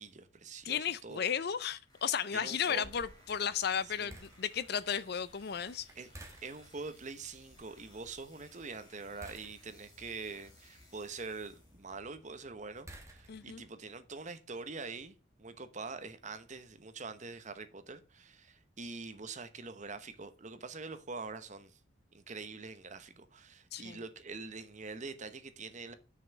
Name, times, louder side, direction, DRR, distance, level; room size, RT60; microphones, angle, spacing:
voice 1, 0.0-1.3 2.3-2.9 3.8-4.2 6.0-6.1 6.4-21.8 22.1-25.9, right 4 dB, 40° right, 0.9 m, -45 dB
voice 2, 0.6-5.9 13.3-13.6 23.7-24.0, left 8 dB, 55° left, 0.5 m, -34 dB
sound 1, 1.8-12.0, left 1 dB, 20° left, 2.6 m, -63 dB
sound 2, 2.8-13.7, right 1 dB, 15° right, 1.4 m, -57 dB
6.3 x 5.5 x 7.1 m
head